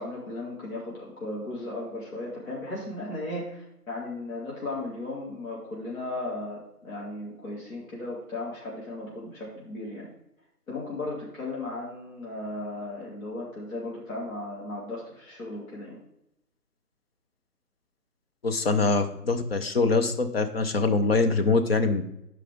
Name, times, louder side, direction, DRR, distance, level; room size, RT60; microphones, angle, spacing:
voice 1, 0.0-10.1 10.7-16.0, left 2 dB, 60° left, -5 dB, 2.8 m, -36 dB
voice 2, 18.4-22.0, left 3 dB, 40° left, 6 dB, 0.9 m, -24 dB
12.0 x 5.0 x 3.6 m, 0.80 s
figure-of-eight pair, 145°, 46 cm